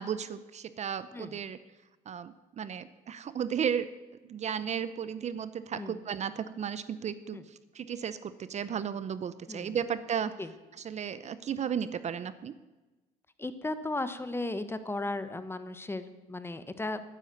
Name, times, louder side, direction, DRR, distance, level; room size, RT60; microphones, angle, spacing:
voice 1, 0.0-1.6 2.1-3.9 4.2-10.3 10.8-12.5, right 8 dB, 40° right, 15 dB, 0.7 m, -34 dB
voice 2, 13.4-17.1, left 2 dB, 15° left, 11 dB, 1.1 m, -36 dB
11.5 x 10.0 x 9.6 m, 1.1 s
cardioid pair, 110°, 17 cm